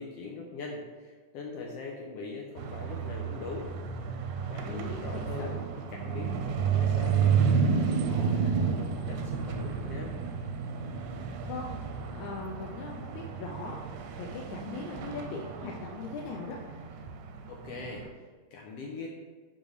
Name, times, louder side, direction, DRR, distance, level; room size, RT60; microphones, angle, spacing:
voice 1, 0.0-3.7 4.5-5.6 5.9-7.2 7.6-10.2 17.5-19.1, left 3 dB, 70° left, -1 dB, 1.5 m, -41 dB
sound 1, 2.6-18.1, right 6 dB, 85° right, 2.0 m, -31 dB
voice 2, 4.6-5.6 11.4-11.8 12.1-13.8 14.1-16.6, left 4 dB, 85° left, -1 dB, 2.0 m, -40 dB
10.0 x 3.9 x 3.2 m, 1.5 s
omnidirectional pair, 3.4 m